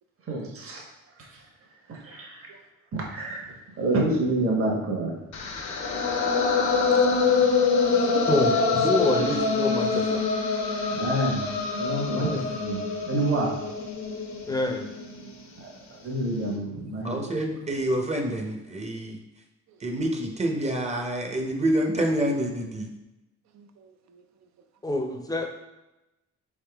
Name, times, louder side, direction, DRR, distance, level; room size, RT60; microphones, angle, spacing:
voice 1, 0.3-0.8 1.9-2.4 2.9-5.1 10.9-11.4 11.8-12.8 13.1-13.5 16.0-17.2, right 2 dB, 50° right, -2 dB, 1.2 m, -27 dB
sound 1, 5.3-15.4, left 4 dB, 70° left, 0.8 m, -25 dB
voice 2, 6.9-7.3 7.8-8.7 9.1-9.4 10.1-10.2 16.6-16.8 23.5-24.2, right 6 dB, 65° right, 7 dB, 0.6 m, -40 dB
voice 3, 8.3-10.2 12.2-12.4 14.5-14.9 24.8-25.5, left 1 dB, 10° left, 4 dB, 0.6 m, -27 dB
voice 4, 17.0-19.2 19.8-22.9, right 1 dB, 20° right, 2 dB, 0.7 m, -27 dB
4.1 x 3.6 x 3.4 m, 0.97 s
cardioid pair, 90°, 30 cm